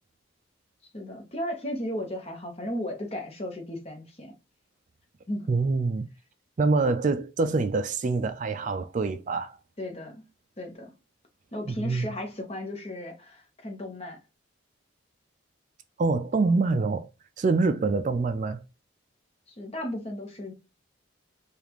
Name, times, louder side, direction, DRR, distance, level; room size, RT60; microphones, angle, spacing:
voice 1, 0.9-4.3 5.3-5.5 9.8-10.2 10.6-10.9 11.5-14.2 19.6-20.5, left 1 dB, 30° left, 0.9 m, -35 dB
voice 2, 5.5-6.1 6.6-9.6 11.6-12.1 16.0-17.1 17.4-18.6, right 3 dB, 40° right, 0.3 m, -25 dB
5.1 x 2.4 x 3.0 m
head